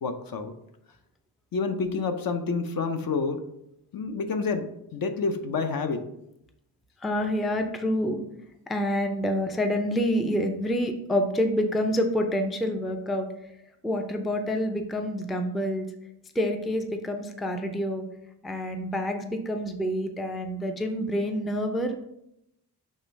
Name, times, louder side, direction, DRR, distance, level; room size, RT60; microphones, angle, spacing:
voice 1, 0.0-0.5 1.5-3.4 3.9-6.0, left 4 dB, 55° left, 7 dB, 0.6 m, -28 dB
voice 2, 7.0-8.2 8.7-13.3 13.8-15.8 16.4-18.0 18.4-21.9, equal, ahead, 5 dB, 0.4 m, -27 dB
6.4 x 3.3 x 5.1 m, 0.81 s
wide cardioid pair, 170°, 41 cm